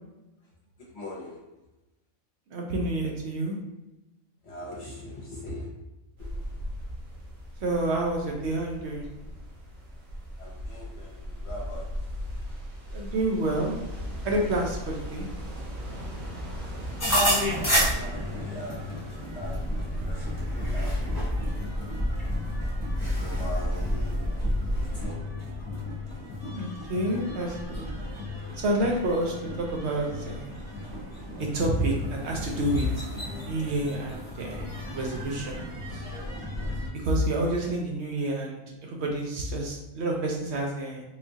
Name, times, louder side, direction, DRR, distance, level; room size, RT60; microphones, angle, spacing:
voice 1, 0.9-1.4 4.4-5.7 6.2-6.3 10.4-11.9 12.3-12.4 17.0-20.2 20.5-21.2 21.6-21.8 23.0-24.3 24.7-25.2, left 1 dB, 60° left, -3 dB, 1.0 m, -42 dB
voice 2, 2.5-3.6 7.6-9.1 12.9-13.8 14.2-15.2 26.5-27.8 28.6-30.5 31.4-35.6 35.9-36.0 36.9-41.0, right 1 dB, 65° right, 0 dB, 0.8 m, -29 dB
sound 1, 6.2-25.0, equal, 85° right, 1.2 m, -36 dB
sound 2, 17.0-36.9, equal, 15° left, 0.6 m, -33 dB
sound 3, 19.4-25.1, equal, 35° right, 1.2 m, -31 dB
3.6 x 2.3 x 2.6 m, 1.0 s
omnidirectional pair, 1.3 m